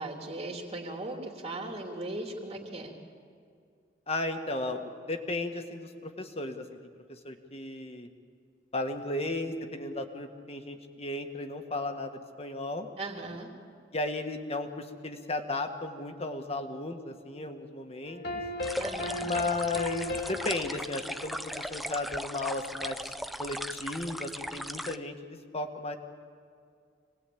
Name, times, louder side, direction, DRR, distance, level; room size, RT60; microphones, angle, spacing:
voice 1, 0.0-3.0 13.0-13.5 18.7-19.3, right 2 dB, 35° right, 1 dB, 3.2 m, -38 dB
voice 2, 4.1-6.7 7.1-8.1 8.7-12.9 13.9-18.4 19.2-23.0 23.4-26.0, left 2 dB, 35° left, 5 dB, 1.8 m, -35 dB
sound 1, 18.1-22.3, left 2 dB, 65° left, 2.4 m, -37 dB
sound 2, 18.6-25.0, equal, ahead, 0.6 m, -38 dB
26.0 x 19.5 x 8.7 m, 2.2 s
head